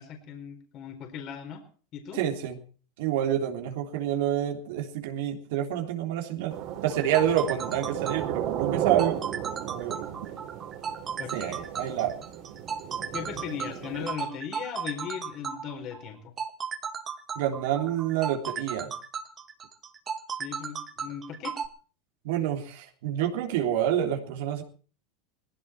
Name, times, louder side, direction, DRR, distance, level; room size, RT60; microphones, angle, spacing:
voice 1, 0.0-1.6 1.9-2.2 11.2-11.6 13.1-16.3 20.4-21.6, left 7 dB, 45° left, 5 dB, 4.6 m, -38 dB
voice 2, 2.1-2.6 3.0-6.6 6.8-9.2 9.7-10.3 11.3-12.2 17.3-18.9 22.2-24.6, right 10 dB, 70° right, 3 dB, 3.4 m, -28 dB
sound 1, 6.5-14.1, right 11 dB, 55° right, 4.5 m, -34 dB
sound 2, 6.9-21.7, right 6 dB, 30° right, 2.2 m, -35 dB
19.0 x 16.0 x 4.5 m, 0.41 s
supercardioid pair, 120°, 0 cm